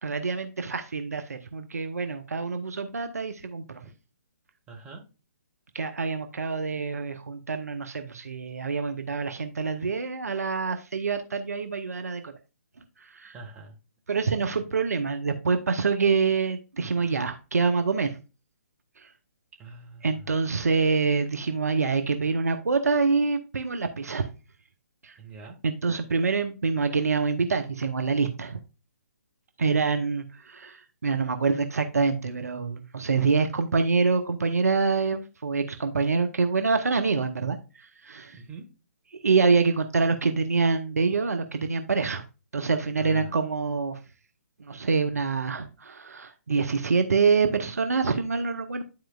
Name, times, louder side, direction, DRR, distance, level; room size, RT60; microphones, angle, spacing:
voice 1, 0.0-3.8 5.7-12.3 12.8-13.4 14.1-18.2 19.0-19.1 20.0-24.3 25.0-25.2 25.6-28.6 29.6-38.4 39.2-42.2 42.5-44.0 44.6-48.8, right 4 dB, 70° right, 7 dB, 0.8 m, -26 dB
voice 2, 4.7-5.0 13.3-13.7 14.4-14.7 19.6-20.5 25.2-25.5 38.3-38.7 43.0-43.3, right 3 dB, 15° right, -1 dB, 1.8 m, -44 dB
11.5 x 4.4 x 2.4 m, 0.31 s
figure-of-eight pair, 130°, 9 cm